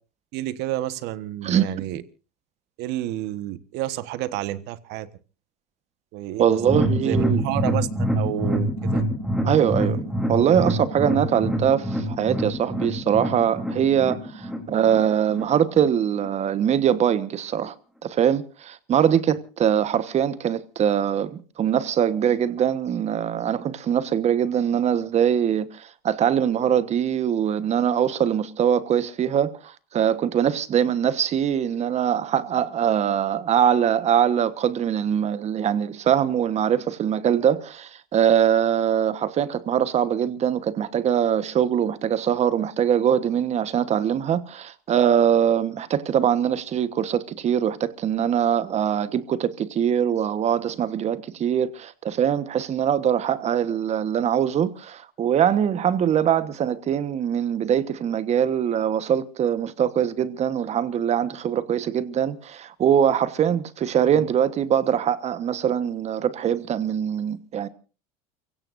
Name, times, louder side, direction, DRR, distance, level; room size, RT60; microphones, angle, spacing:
voice 1, 0.3-2.0 2.8-5.1 6.1-9.0 64.1-64.3, right 14 dB, 60° right, 1.4 m, -30 dB
voice 2, 6.4-7.4 9.4-17.7 18.0-67.7, right 9 dB, 35° right, 1.3 m, -22 dB
sound 1, 6.6-15.9 16.2-16.3 16.7-16.8, equal, 5° right, 3.5 m, -26 dB
29.5 x 16.5 x 2.6 m
supercardioid pair, 120°, 19 cm